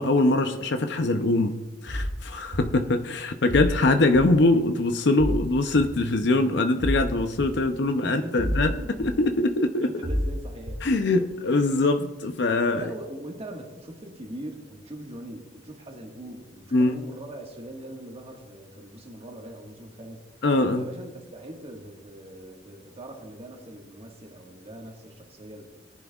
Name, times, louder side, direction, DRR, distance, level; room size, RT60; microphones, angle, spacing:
voice 1, 0.0-1.5 1.8-8.7 9.0-9.9 10.8-12.8 16.7-16.9 20.4-20.9, left 2 dB, 70° left, 7 dB, 0.6 m, -22 dB
sound 1, 1.9-2.1 2.5-2.6 3.5-3.7 4.1-4.3 5.2-5.4 5.7-5.8 6.8-7.0 7.4-7.5 8.4-8.7 9.0-9.1 10.0-10.3 10.7-10.8, equal, 55° right, 2.0 m, -27 dB
voice 2, 7.8-9.2 9.8-11.1 12.7-20.3 20.7-25.6, right 1 dB, 35° right, 1 dB, 1.6 m, -41 dB
18.5 x 10.5 x 2.4 m, 1.1 s
head